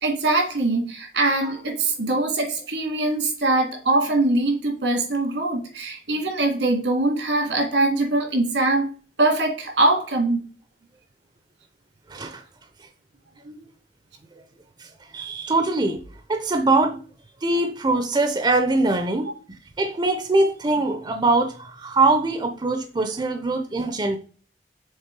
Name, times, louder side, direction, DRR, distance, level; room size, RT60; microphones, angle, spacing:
voice 1, 0.0-8.9 9.2-10.4, right 2 dB, 90° right, 2.4 m, -22 dB
voice 2, 12.1-12.4 14.8-16.0 16.3-17.0 17.4-19.3 19.8-24.2, right 2 dB, 25° right, 0.6 m, -22 dB
6.6 x 4.0 x 4.6 m
head